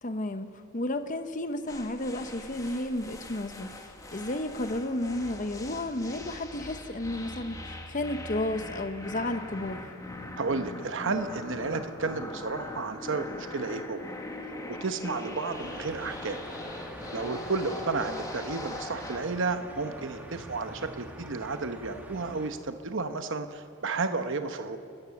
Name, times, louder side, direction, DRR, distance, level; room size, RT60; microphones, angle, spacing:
voice 1, 0.0-3.7 4.1-9.9, left 1 dB, 35° left, 9 dB, 0.9 m, -32 dB
sound 1, 1.7-19.4, left 2 dB, 15° left, 1.5 m, -41 dB
voice 2, 10.4-14.1 14.7-16.4 17.1-24.8, right 3 dB, 60° right, 8 dB, 0.9 m, -32 dB
sound 2, 15.5-22.5, right 1 dB, 10° right, 1.9 m, -45 dB
30.0 x 13.5 x 7.1 m, 2.5 s
head